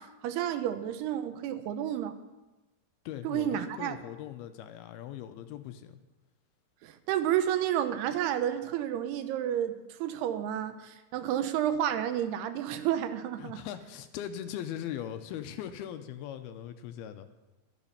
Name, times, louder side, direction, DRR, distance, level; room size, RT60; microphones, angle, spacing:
voice 1, 0.0-2.2 3.2-4.0 6.8-13.6, right 10 dB, 80° right, 10 dB, 2.8 m, -31 dB
voice 2, 3.1-6.0 13.4-17.3, left 10 dB, 85° left, 9 dB, 2.5 m, -40 dB
12.5 x 12.5 x 5.7 m, 1.1 s
omnidirectional pair, 4.6 m